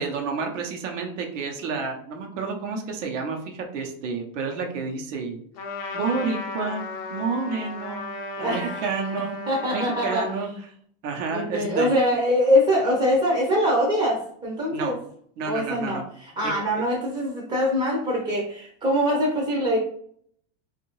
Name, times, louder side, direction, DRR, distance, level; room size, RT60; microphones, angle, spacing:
voice 1, 0.0-5.4 5.9-8.1 8.4-9.4 9.7-10.5 11.0-11.9 14.7-14.9 15.4-16.0 16.4-16.5, right 4 dB, 90° right, 2 dB, 0.9 m, -29 dB
Trumpet, 5.6-10.5, left 2 dB, 50° left, 0.6 m, -35 dB
voice 2, 8.4-8.8 9.5-10.3 11.3-15.0 15.5-19.8, equal, 15° right, -3 dB, 0.6 m, -23 dB
2.7 x 2.5 x 3.0 m, 0.62 s
supercardioid pair, 150°, 36 cm